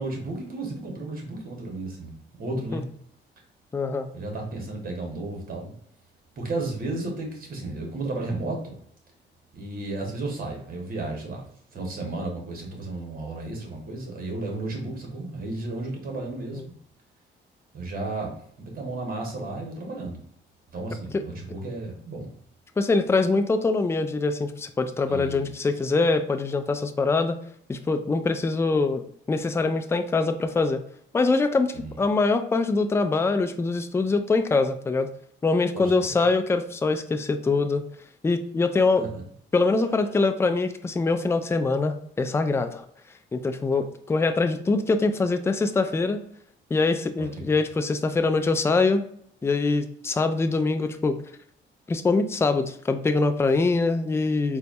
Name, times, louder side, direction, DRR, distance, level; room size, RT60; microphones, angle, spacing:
voice 1, 0.0-2.9 4.1-5.7 6.4-8.8 9.5-11.4 11.7-16.7 17.7-18.3 18.6-20.2 20.7-22.3 25.0-25.7 31.7-32.0 35.7-36.2 39.0-39.1 47.2-47.4, right 2 dB, 50° right, 1 dB, 1.3 m, -33 dB
voice 2, 3.7-4.1 16.5-16.6 21.1-21.2 22.8-27.4 27.7-29.0 29.3-30.8 31.1-35.1 35.4-37.8 38.2-39.0 39.5-42.8 43.3-46.2 46.7-49.0 49.4-51.2 51.9-54.6, left 3 dB, 15° left, 8 dB, 0.3 m, -23 dB
4.0 x 2.3 x 2.6 m, 0.64 s
cardioid pair, 90°, 20 cm